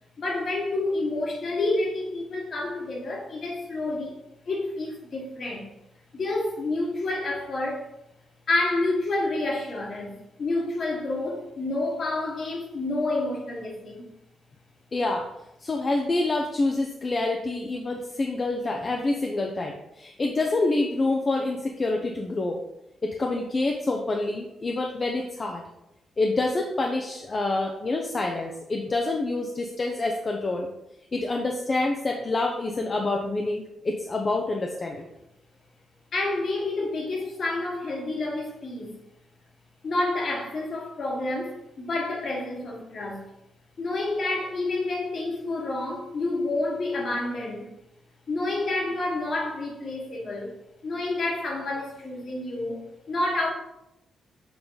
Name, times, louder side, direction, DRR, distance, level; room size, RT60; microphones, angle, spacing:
voice 1, 0.2-4.1 4.5-5.7 6.1-7.9 8.5-14.0 36.1-38.9 39.8-43.2 43.8-47.7 48.3-50.5 50.8-52.8 53.1-53.5, left 2 dB, 50° left, 1.6 m, -29 dB
voice 2, 14.9-15.3 15.6-22.6 23.0-25.6 26.2-30.7 31.1-35.1, left 2 dB, 30° left, 0.6 m, -27 dB
7.0 x 3.7 x 3.9 m
cardioid pair, 120°, 0 cm